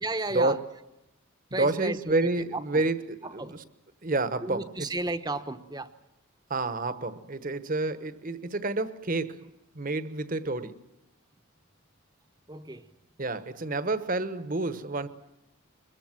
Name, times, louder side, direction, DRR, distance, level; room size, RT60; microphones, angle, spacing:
voice 1, 0.0-0.6 1.5-2.8 3.2-3.6 4.4-5.9 12.5-12.9, right 2 dB, 20° right, 1.0 m, -34 dB
voice 2, 1.5-3.6 4.0-5.0 6.5-9.5 9.7-10.7 13.2-15.1, right 2 dB, 40° right, 1.1 m, -29 dB
23.5 x 22.5 x 7.6 m
head